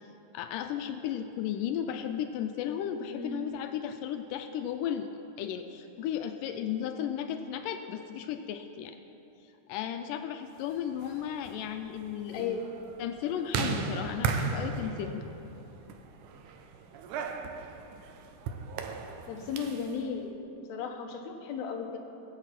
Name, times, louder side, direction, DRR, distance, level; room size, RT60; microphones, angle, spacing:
voice 1, 0.3-5.1 5.4-9.0 9.7-12.6 13.0-15.3, left 9 dB, 85° left, 7 dB, 2.2 m, -34 dB
voice 2, 3.1-3.5 12.3-12.6 19.3-20.3 20.7-22.0, left 6 dB, 65° left, 2 dB, 2.1 m, -35 dB
sound 1, 10.8-19.9, right 5 dB, 75° right, 2.2 m, -36 dB
20.0 x 8.0 x 5.8 m, 3.0 s
omnidirectional pair, 3.8 m